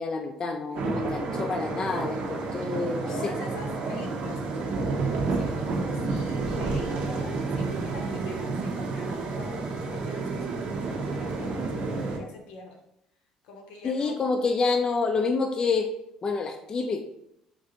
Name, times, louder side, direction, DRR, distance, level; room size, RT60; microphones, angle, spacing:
voice 1, 0.0-3.3 13.8-15.9 16.2-17.0, left 4 dB, 40° left, 4 dB, 0.4 m, -28 dB
voice 2, 0.7-1.2 2.9-12.8 13.4-14.3, left 3 dB, 80° left, 2 dB, 0.8 m, -45 dB
sound 1, 0.8-12.2, right 3 dB, 60° right, 0.6 m, -30 dB
3.3 x 2.5 x 3.8 m, 0.77 s
supercardioid pair, 80°, 2 cm